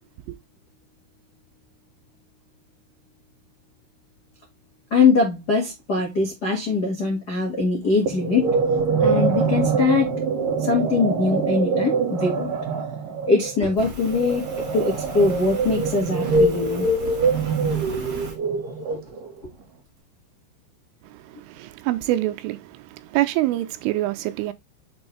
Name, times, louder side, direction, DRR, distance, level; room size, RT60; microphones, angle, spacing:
voice 1, 4.9-8.6 9.0-10.1 10.6-12.5 13.3-16.9, left 4 dB, 75° left, 0.9 m, -22 dB
sound 1, 8.1-19.4, right 4 dB, 60° right, 2.5 m, -24 dB
Fire, 13.8-18.4, right 3 dB, 40° right, 2.0 m, -36 dB
voice 2, 21.0-24.5, right 16 dB, 85° right, 3.2 m, -26 dB
7.3 x 5.3 x 3.4 m
omnidirectional pair, 5.7 m